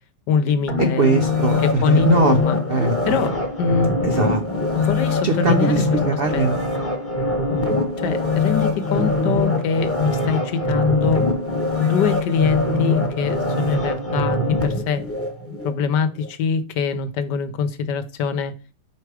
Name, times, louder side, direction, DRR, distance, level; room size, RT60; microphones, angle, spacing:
voice 1, 0.3-1.1 1.6-2.6 3.1-4.1 4.7-5.7 6.3-6.5 8.0-11.2 11.8-15.0 15.6-18.5, left 6 dB, 70° left, 11 dB, 1.3 m, -23 dB
sound 1, 0.7-15.7 16.2-16.3, left 2 dB, 10° left, 0.8 m, -23 dB
voice 2, 0.8-2.4 2.7-3.2 4.0-4.6 5.2-6.6, right 3 dB, 85° right, 5 dB, 0.5 m, -20 dB
5.2 x 4.6 x 4.7 m, 0.33 s
omnidirectional pair, 2.1 m